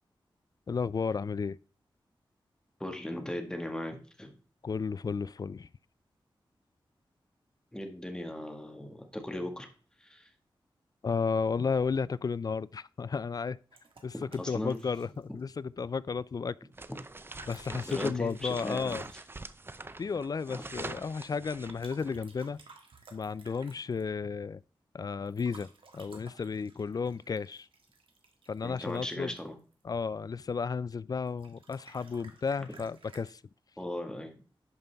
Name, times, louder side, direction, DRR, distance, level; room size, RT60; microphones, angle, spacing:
voice 1, 0.7-1.6 4.6-5.7 11.0-13.6 14.0-16.5 17.5-19.1 20.0-22.6 23.1-24.6 24.9-25.7 25.9-27.7 28.5-29.3 29.8-33.4, left 5 dB, 45° left, 0.3 m, -33 dB
voice 2, 2.8-4.3 7.7-9.7 10.0-10.3 14.1-14.8 16.9-17.0 17.8-19.0 20.5-20.6 28.6-29.5 33.8-34.4, left 1 dB, 10° left, 1.6 m, -38 dB
sound 1, 13.7-15.5 17.1-19.4 21.7-24.1 25.3-29.8 31.2-33.3, right 4 dB, 75° right, 1.6 m, -56 dB
sound 2, 16.7-22.2, right 2 dB, 25° right, 0.5 m, -44 dB
11.0 x 5.3 x 3.4 m
wide cardioid pair, 80°, 9 cm